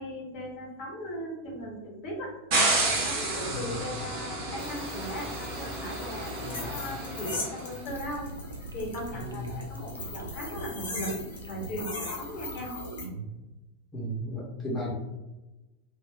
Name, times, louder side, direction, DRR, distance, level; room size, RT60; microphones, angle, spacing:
voice 1, 0.0-2.3 2.8-8.3 8.7-11.1 11.5-12.7, equal, 40° left, -2 dB, 0.9 m, -38 dB
sound 1, 2.5-7.6, right 2 dB, 50° right, 0.8 m, -31 dB
sound 2, 4.6-13.0, left 3 dB, 65° left, 0.9 m, -40 dB
sound 3, 7.8-13.4, right 3 dB, 80° right, 0.3 m, -41 dB
voice 2, 9.1-9.6 13.9-14.9, equal, 15° left, -4 dB, 0.8 m, -35 dB
3.6 x 2.2 x 2.2 m, 1.1 s
figure-of-eight pair, 90°, 0 cm